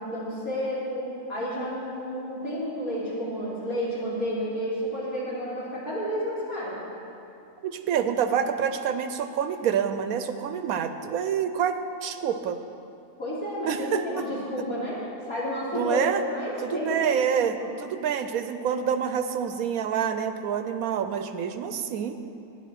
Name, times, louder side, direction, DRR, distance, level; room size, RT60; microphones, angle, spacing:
voice 1, 0.0-6.8 13.2-15.0 15.3-17.1, equal, 80° left, -8 dB, 3.7 m, -31 dB
voice 2, 7.6-12.6 13.7-14.0 15.7-16.2 16.6-22.2, right 8 dB, 85° right, 9 dB, 1.1 m, -27 dB
12.0 x 9.8 x 5.9 m, 2.7 s
omnidirectional pair, 1.5 m